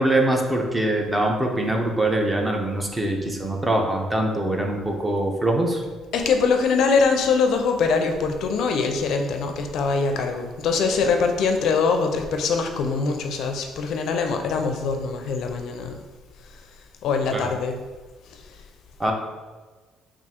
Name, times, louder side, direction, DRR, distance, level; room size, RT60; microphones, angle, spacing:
voice 1, 0.0-5.8 17.3-17.5 19.0-19.1, right 1 dB, 15° right, 1 dB, 0.5 m, -23 dB
voice 2, 6.1-16.0 17.0-17.8 18.3-18.4, left 4 dB, 65° left, 5 dB, 0.4 m, -23 dB
3.6 x 2.4 x 4.2 m, 1.3 s
cardioid pair, 140°, 0 cm